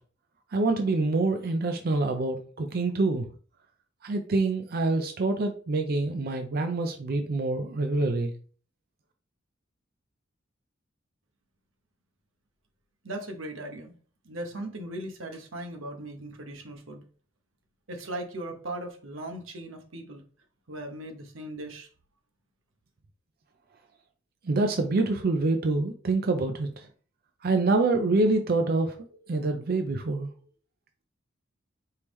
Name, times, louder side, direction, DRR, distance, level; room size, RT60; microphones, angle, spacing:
voice 1, 0.5-3.2 4.0-8.3 24.5-26.7 27.4-29.0 29.3-30.3, right 3 dB, 50° right, 0.5 m, -26 dB
voice 2, 13.0-13.9 14.2-17.0 17.9-20.2 20.7-21.9, right 1 dB, 90° right, 0.9 m, -38 dB
4.5 x 3.5 x 3.1 m
head